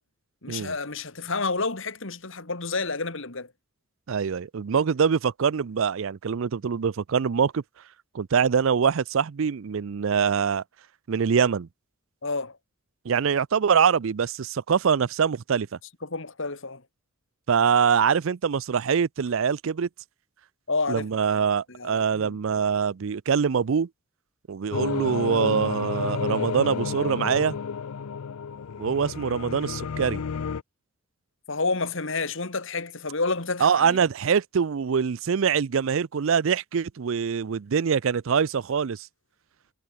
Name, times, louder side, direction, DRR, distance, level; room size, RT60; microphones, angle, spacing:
voice 1, 0.4-3.5 12.2-12.6 16.0-16.8 20.7-21.1 21.4-22.3 31.5-34.0, left 3 dB, 60° left, 2.3 m, -30 dB
voice 2, 4.1-7.6 8.1-10.6 11.1-11.7 13.0-15.7 17.5-19.9 20.9-23.9 24.5-27.6 28.8-30.2 33.6-39.1, right 6 dB, 65° right, 0.4 m, -24 dB
sound 1, 24.7-30.6, left 6 dB, 90° left, 0.5 m, -31 dB
head